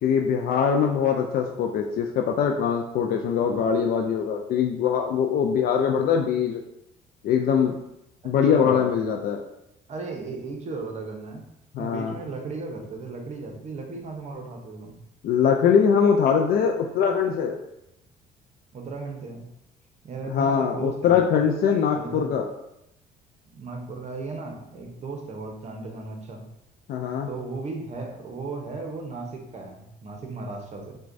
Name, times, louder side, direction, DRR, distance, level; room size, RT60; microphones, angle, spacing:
voice 1, 0.0-6.6 7.2-7.8 8.2-9.4 11.7-12.1 15.2-17.6 20.3-22.5 26.9-27.3, left 7 dB, 60° left, 2 dB, 0.4 m, -22 dB
voice 2, 8.5-8.9 9.9-11.5 11.8-15.0 18.7-19.5 20.0-21.3 21.9-22.3 23.5-26.4 27.3-31.0, right 3 dB, 40° right, 2 dB, 0.8 m, -36 dB
6.1 x 2.2 x 2.6 m, 0.84 s
cardioid pair, 110°, 17 cm